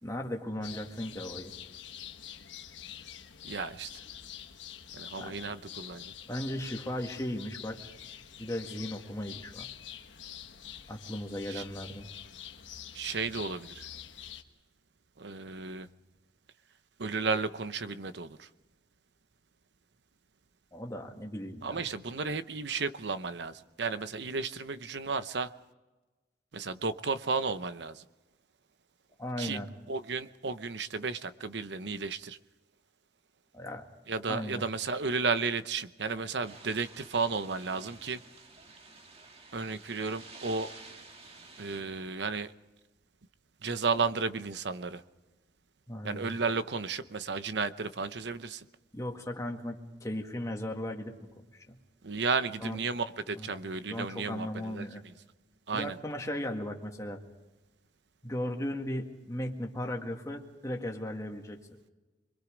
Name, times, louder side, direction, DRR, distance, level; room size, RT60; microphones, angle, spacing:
voice 1, 0.0-1.5 5.2-5.4 6.3-7.8 8.4-9.7 10.9-12.1 20.7-21.9 29.2-29.7 33.5-33.9 34.3-34.6 45.9-46.3 48.9-51.8 52.6-52.8 53.4-53.6 53.9-55.0 55.7-57.2 58.2-61.6, left 1 dB, 15° left, 2 dB, 1.9 m, -37 dB
sound 1, 0.6-14.4, left 10 dB, 85° left, 1.3 m, -46 dB
voice 2, 3.4-3.9 4.9-6.1 11.5-11.6 12.9-13.9 15.2-15.9 17.0-18.5 21.6-25.5 26.5-28.0 29.4-32.4 34.1-38.2 39.5-40.7 41.6-42.5 43.6-45.0 46.0-48.6 52.0-54.9 55.7-56.0, right 4 dB, 70° right, 13 dB, 0.8 m, -33 dB
sound 2, 36.5-41.8, right 3 dB, 35° right, 1.9 m, -51 dB
26.5 x 22.0 x 5.1 m, 1.2 s
head